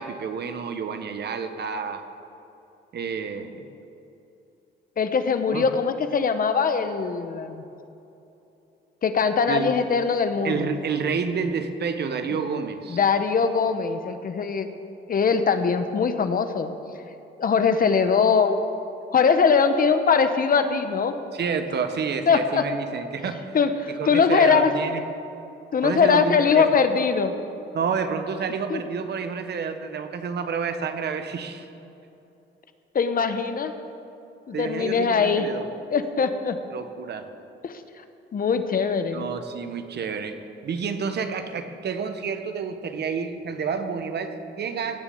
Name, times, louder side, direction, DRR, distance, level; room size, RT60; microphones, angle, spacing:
voice 1, 0.0-2.0 2.9-3.6 5.5-5.6 9.5-9.7 10.4-13.0 21.3-23.5 24.0-25.0 25.8-26.7 27.7-31.7 34.5-35.7 36.7-37.3 39.1-40.4 40.6-45.0, right 6 dB, 55° right, 8 dB, 1.2 m, -29 dB
voice 2, 5.0-7.6 9.0-10.7 12.9-14.7 15.1-16.7 17.4-18.6 19.1-21.1 22.3-22.6 23.5-24.7 25.7-27.3 28.7-28.8 32.9-33.7 34.5-36.6 37.6-37.8 38.3-39.3, left 5 dB, 45° left, 8 dB, 1.1 m, -21 dB
18.0 x 7.0 x 7.9 m, 2.9 s
cardioid pair, 90°, 20 cm